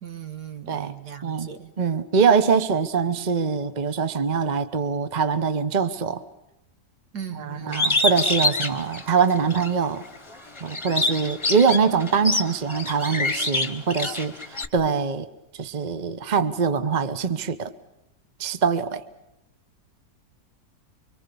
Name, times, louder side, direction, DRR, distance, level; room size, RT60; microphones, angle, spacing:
voice 1, 0.0-1.7 7.1-8.0, right 9 dB, 70° right, 8 dB, 2.1 m, -38 dB
voice 2, 1.8-6.2 7.3-10.0 10.6-15.3 15.6-17.7 18.4-19.0, right 6 dB, 30° right, 11 dB, 1.0 m, -23 dB
Bird, 7.7-9.7 10.2-14.7, left 2 dB, 20° left, 1.3 m, -26 dB
26.0 x 24.5 x 7.0 m, 0.88 s
omnidirectional pair, 1.8 m